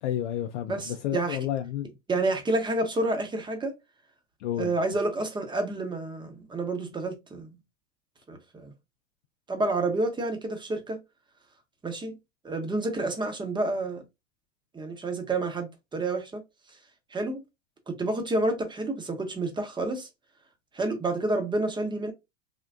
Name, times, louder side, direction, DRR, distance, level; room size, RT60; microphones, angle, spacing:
voice 1, 0.0-1.9 4.4-4.7, left 11 dB, 75° left, 0.5 m, -31 dB
voice 2, 0.7-1.4 2.1-3.7 4.6-7.5 8.3-8.7 9.5-11.0 11.8-12.2 12.4-14.0 14.7-16.4 17.1-17.4 17.9-20.1 20.7-22.1, right 2 dB, 15° right, 0.8 m, -29 dB
3.5 x 2.1 x 2.4 m
hypercardioid pair, 100°, 36 cm